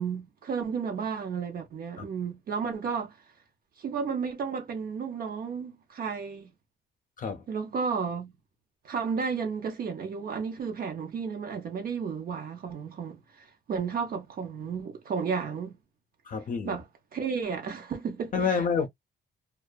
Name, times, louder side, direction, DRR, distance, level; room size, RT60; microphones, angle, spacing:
voice 1, 0.0-3.2 3.8-6.5 7.5-8.3 8.8-15.8 16.6-18.7, right 6 dB, 50° right, 0.6 m, -33 dB
voice 2, 16.3-16.8 18.3-18.9, left 5 dB, 45° left, 0.5 m, -28 dB
2.6 x 2.3 x 2.2 m
wide cardioid pair, 160°, 19 cm